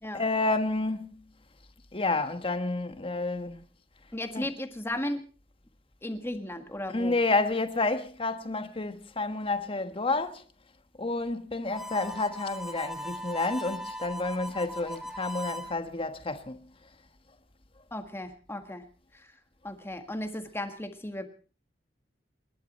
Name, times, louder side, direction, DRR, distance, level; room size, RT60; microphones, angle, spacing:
voice 1, 0.1-1.3 1.9-3.6 4.3-4.5 6.9-10.4 11.0-16.6, left 3 dB, 30° left, 1.4 m, -30 dB
voice 2, 4.1-5.2 6.0-7.1 17.9-18.8 19.1-19.3 19.6-21.3, left 1 dB, 15° left, 1.6 m, -35 dB
Harmonica, 11.7-15.7, equal, ahead, 1.0 m, -39 dB
29.0 x 11.5 x 4.2 m
head